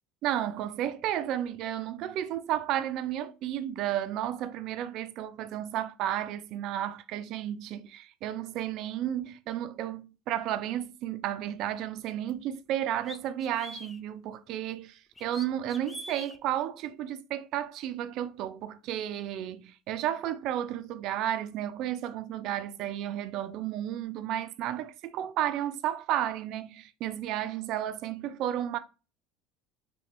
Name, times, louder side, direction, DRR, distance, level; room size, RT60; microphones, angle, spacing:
voice 1, 0.2-28.8, right 11 dB, 60° right, 0.3 m, -32 dB
sound 1, 12.3-12.4 13.1-14.0 15.2-16.4, left 2 dB, 15° left, 0.5 m, -44 dB
3.0 x 2.9 x 2.9 m
supercardioid pair, 90°, 0 cm